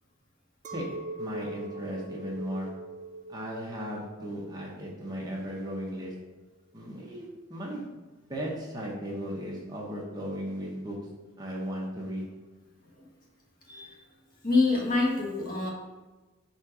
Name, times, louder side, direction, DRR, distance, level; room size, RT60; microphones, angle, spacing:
Chink clink, 0.6-6.1, right 2 dB, 35° right, 0.4 m, -42 dB
voice 1, 1.2-2.7 3.3-6.1 6.7-7.9 8.3-11.0 11.4-12.3, equal, 20° right, -3 dB, 1.0 m, -36 dB
voice 2, 14.4-15.7, left 3 dB, 40° left, -2 dB, 1.2 m, -26 dB
5.2 x 4.2 x 4.8 m, 1.2 s
head